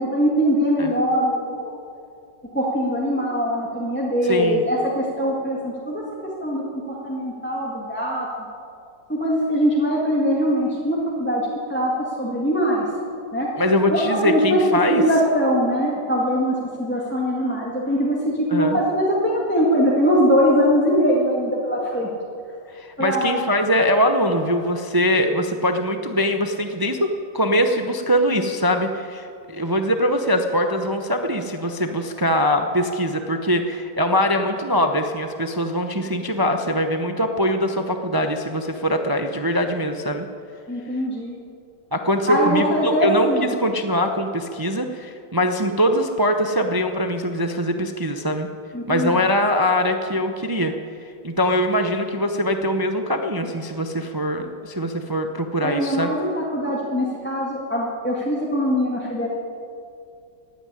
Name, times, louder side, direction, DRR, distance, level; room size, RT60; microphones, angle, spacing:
voice 1, 0.0-1.7 2.5-8.3 9.1-11.4 11.7-11.9 12.2-12.8 13.3-13.5 13.9-22.1 23.0-23.3 40.7-41.4 42.3-43.5 48.7-49.1 55.6-59.3, equal, 5° left, -5 dB, 1.8 m, -22 dB
voice 2, 4.2-4.7 13.6-15.0 18.5-18.8 22.7-40.3 41.9-48.5 48.9-50.7 51.2-56.1, equal, 35° right, 5 dB, 0.3 m, -22 dB
15.0 x 9.4 x 9.8 m, 2.5 s
omnidirectional pair, 1.9 m